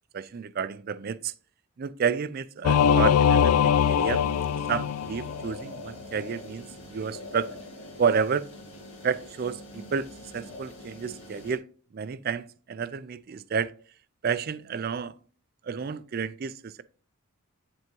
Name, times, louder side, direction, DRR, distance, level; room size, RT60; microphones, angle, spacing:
voice 1, 0.1-1.3 1.8-4.2 4.7-7.6 8.0-8.5 9.0-11.6 11.9-13.7 14.2-15.2 15.6-16.8, right 6 dB, 45° right, 0.3 m, -30 dB
Singing / Musical instrument, 2.6-5.5, left 8 dB, 90° left, 0.4 m, -22 dB
sound 1, 3.7-11.6, left 1 dB, 70° left, 1.6 m, -44 dB
10.5 x 3.5 x 3.0 m
head